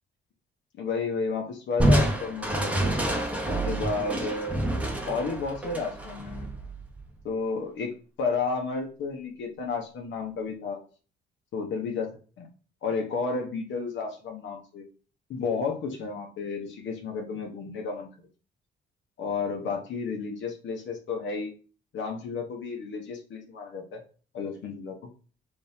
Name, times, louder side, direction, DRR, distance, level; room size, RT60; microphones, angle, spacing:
voice 1, 0.8-2.9 3.4-4.6 5.0-6.5 7.2-7.9 8.2-10.8 11.5-12.1 12.4-12.5 12.8-14.9 15.3-18.1 19.2-21.5 21.9-24.0 24.3-25.0, left 4 dB, 70° left, 2 dB, 1.0 m, -32 dB
Crushing, 1.8-7.2, right 1 dB, 5° right, 0.8 m, -27 dB
3.4 x 2.8 x 3.4 m, 0.37 s
cardioid pair, 90°, 20 cm